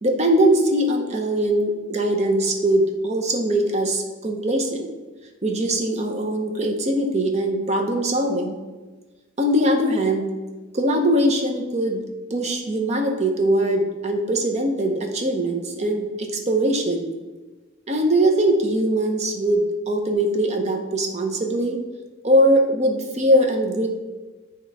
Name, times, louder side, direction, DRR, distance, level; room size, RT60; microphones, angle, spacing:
voice 1, 0.0-4.9 5.4-8.5 9.4-10.3 10.7-12.0 12.3-17.1 17.9-21.8 22.2-23.9, right 1 dB, 35° right, 3 dB, 0.7 m, -21 dB
7.9 x 3.0 x 4.7 m, 1.3 s
head